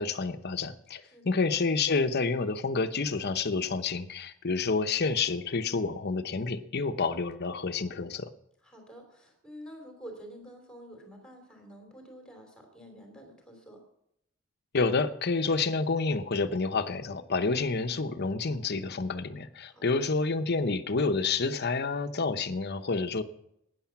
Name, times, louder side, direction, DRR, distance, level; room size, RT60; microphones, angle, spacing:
voice 1, 0.0-8.3 14.7-23.2, left 4 dB, 50° left, 10 dB, 0.8 m, -29 dB
voice 2, 1.0-1.4 8.6-13.8 19.7-20.1, equal, 5° left, 3 dB, 3.0 m, -49 dB
13.0 x 9.7 x 5.9 m, 0.78 s
head